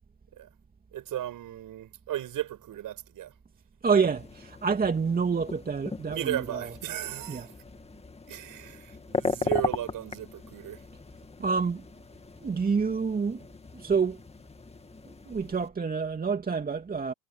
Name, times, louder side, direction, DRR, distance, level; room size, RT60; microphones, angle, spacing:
voice 1, 0.9-3.3 6.1-7.6 8.3-10.8, right 12 dB, 40° right, 6.4 m, -35 dB
voice 2, 3.8-6.7 7.3-7.5 11.4-11.9 12.4-13.4 13.7-14.2 15.3-17.1, right 5 dB, 15° right, 2.6 m, -27 dB
sound 1, 4.0-15.7, left 3 dB, 10° left, 2.2 m, -38 dB
supercardioid pair, 105°, 49 cm